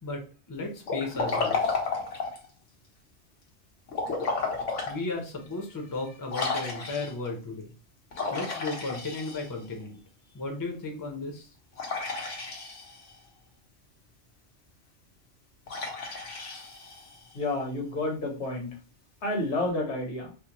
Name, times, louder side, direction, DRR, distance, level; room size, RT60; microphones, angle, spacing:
voice 1, 0.0-1.8 4.9-7.7 8.3-10.0 10.3-11.5, left 3 dB, 20° left, 2 dB, 0.6 m, -35 dB
Liquid, 0.8-2.5 3.9-5.0 5.5-5.6 6.3-7.3 8.1-9.7 11.8-13.1 15.7-17.3, left 4 dB, 90° left, 1.3 m, -32 dB
voice 2, 17.3-18.7 19.2-20.3, left 2 dB, 75° left, 1 dB, 1.4 m, -30 dB
4.8 x 2.2 x 2.9 m, 0.36 s
omnidirectional pair, 1.2 m